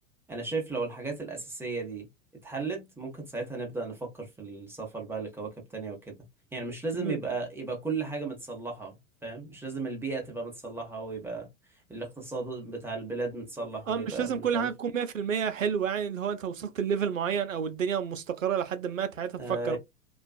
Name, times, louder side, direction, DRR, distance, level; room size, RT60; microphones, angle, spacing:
voice 1, 0.3-2.1 2.4-6.1 6.5-11.5 11.9-14.7 19.4-19.8, right 3 dB, 5° right, 0.7 m, -35 dB
voice 2, 13.9-19.8, right 7 dB, 85° right, 0.5 m, -30 dB
2.4 x 2.2 x 2.3 m
figure-of-eight pair, 90°, 38 cm